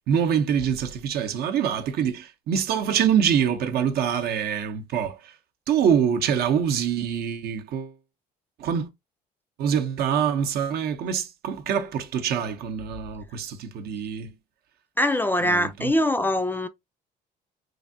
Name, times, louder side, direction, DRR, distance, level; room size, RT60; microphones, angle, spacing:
voice 1, 0.0-5.3 5.7-7.9 8.6-8.9 9.6-14.3 15.5-15.9, right 8 dB, 70° right, 0.7 m, -25 dB
voice 2, 15.0-16.7, left 1 dB, 10° left, 0.3 m, -23 dB
3.2 x 2.5 x 2.5 m
cardioid pair, 110°, 17 cm